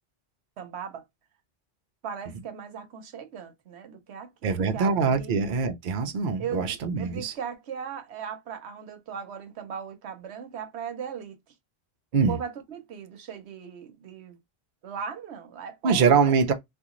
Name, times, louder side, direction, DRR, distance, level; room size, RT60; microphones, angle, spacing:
voice 1, 0.6-1.0 2.0-5.5 6.4-11.4 12.1-14.4 14.8-16.3, right 7 dB, 80° right, 1.0 m, -38 dB
voice 2, 4.4-7.3 12.1-12.4 15.8-16.5, right 5 dB, 55° right, 0.7 m, -23 dB
2.9 x 2.4 x 3.7 m
omnidirectional pair, 1.1 m